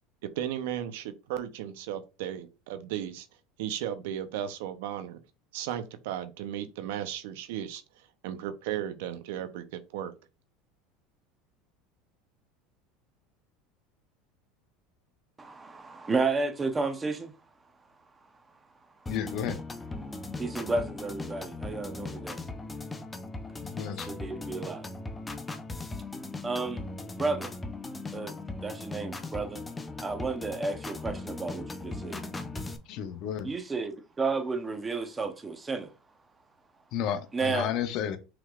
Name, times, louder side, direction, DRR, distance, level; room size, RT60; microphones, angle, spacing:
voice 1, 0.2-3.3 3.6-5.2 5.5-7.8 8.2-10.1, right 10 dB, 80° right, 0.6 m, -35 dB
voice 2, 15.4-17.3 20.4-22.4 24.1-24.9 26.4-26.8 27.2-27.5 28.1-28.3 28.6-29.6 30.0-32.2 33.4-35.9 37.3-37.7, right 3 dB, 20° right, 0.7 m, -32 dB
voice 3, 19.1-19.6 23.6-24.2 32.9-33.5 36.9-38.2, left 9 dB, 55° left, 0.7 m, -32 dB
sound 1, 19.1-32.8, left 2 dB, 15° left, 0.6 m, -38 dB
5.9 x 3.2 x 2.4 m
supercardioid pair, 115°, 0 cm